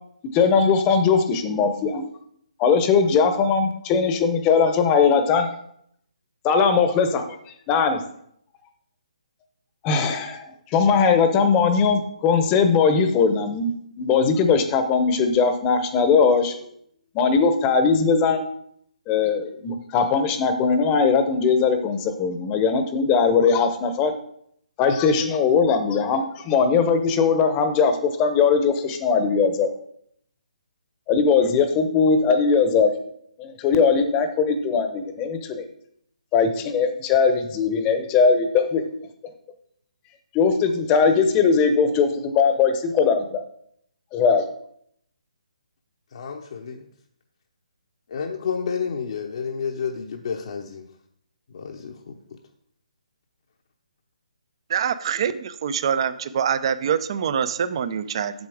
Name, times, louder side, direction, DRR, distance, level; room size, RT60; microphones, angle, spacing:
voice 1, 0.3-2.0 2.6-5.5 6.4-7.4 7.7-8.0 9.8-10.4 10.7-13.7 14.0-16.6 17.1-18.5 19.1-24.1 24.8-29.7 31.1-32.9 33.4-35.6 36.3-38.8 40.3-43.4 44.1-44.4, left 5 dB, 20° left, 8 dB, 0.8 m, -20 dB
voice 2, 46.1-46.9 48.1-50.8 51.5-52.2, left 6 dB, 55° left, 2 dB, 0.8 m, -30 dB
voice 3, 54.7-58.3, right 8 dB, 40° right, 13 dB, 0.5 m, -24 dB
8.0 x 6.8 x 4.9 m, 0.70 s
hypercardioid pair, 155°, 4 cm